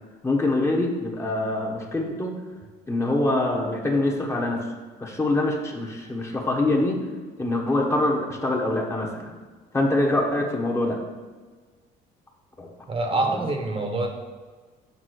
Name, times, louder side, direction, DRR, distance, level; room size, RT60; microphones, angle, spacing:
voice 1, 0.2-2.4 2.9-4.6 5.0-7.0 7.4-9.3 9.7-11.0 12.6-12.7 13.3-13.5, left 2 dB, 15° left, 0 dB, 1.1 m, -24 dB
voice 2, 12.9-14.1, right 2 dB, 30° right, 4 dB, 1.0 m, -25 dB
6.9 x 3.6 x 6.2 m, 1.4 s
cardioid pair, 110°, 17 cm